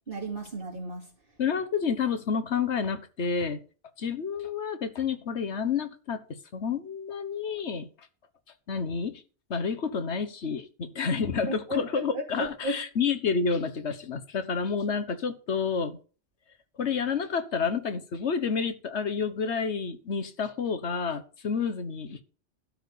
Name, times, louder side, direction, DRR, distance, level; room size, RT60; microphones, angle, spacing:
voice 1, 0.1-1.1 11.0-11.1 11.5-11.8 12.1-12.8, right 1 dB, 50° right, 2.7 m, -34 dB
voice 2, 1.4-3.6 4.0-7.9 8.7-9.2 9.5-16.0 16.8-22.2, left 5 dB, 70° left, 1.4 m, -29 dB
12.5 x 4.8 x 8.4 m
omnidirectional pair, 1.2 m